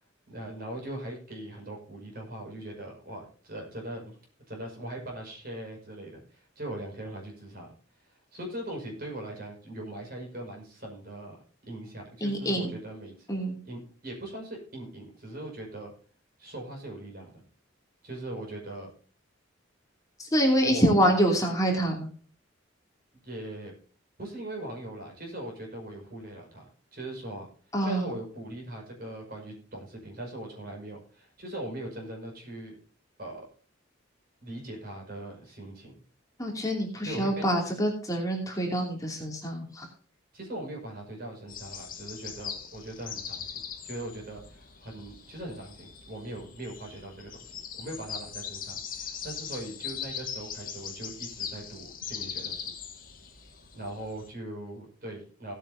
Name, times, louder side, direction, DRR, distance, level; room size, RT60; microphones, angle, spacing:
voice 1, 0.3-4.2 4.5-7.7 8.1-11.3 11.6-13.3 13.6-15.9 16.4-17.4 18.0-18.9 20.7-21.1 23.1-23.7 24.2-27.5 27.8-32.8 33.2-33.5 34.4-36.0 37.0-37.5 40.3-52.7 53.7-55.5, right 1 dB, 50° right, 0 dB, 5.8 m, -40 dB
voice 2, 12.2-12.8 13.3-13.6 20.2-22.1 27.7-28.1 36.4-39.9, equal, 15° left, 0 dB, 2.8 m, -26 dB
sound 1, 41.5-54.3, left 7 dB, 45° left, 2.3 m, -40 dB
17.5 x 9.1 x 2.8 m, 0.40 s
head